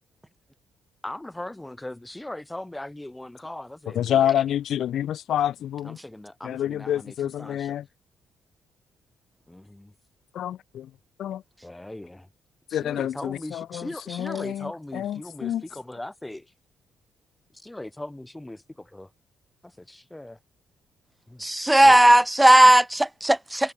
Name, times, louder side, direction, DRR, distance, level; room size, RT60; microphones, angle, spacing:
voice 1, 1.0-4.3 5.8-7.7 9.5-9.9 11.6-12.3 12.7-16.5 17.5-19.1 19.6-20.4 21.3-22.0, left 1 dB, 10° left, 5.1 m, -39 dB
voice 2, 3.9-6.0 6.4-7.9 10.3-10.9 11.2-11.4 12.7-15.6, left 11 dB, 70° left, 0.7 m, -27 dB
voice 3, 21.4-23.7, right 1 dB, 10° right, 0.4 m, -16 dB
cardioid pair, 90°, 0 cm